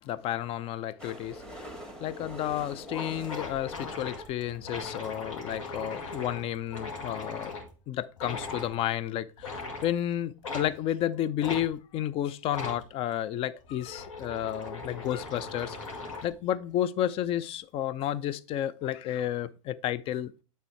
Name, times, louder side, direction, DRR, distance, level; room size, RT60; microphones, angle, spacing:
voice 1, 0.0-7.6 7.9-20.4, left 11 dB, 35° left, 0.5 m, -32 dB
sound 1, 1.0-4.9 5.5-5.6 5.8-5.9 6.1-6.2 6.5-6.6, equal, 5° left, 2.1 m, -45 dB
sound 2, 2.2-2.3 2.6-2.7 2.9-7.7 8.2-8.7 9.4-9.9 10.4-10.7 11.4-11.6 12.5-12.8 13.6-16.4, left 3 dB, 70° left, 2.0 m, -39 dB
9.2 x 3.4 x 4.5 m
figure-of-eight pair, 85°, 17 cm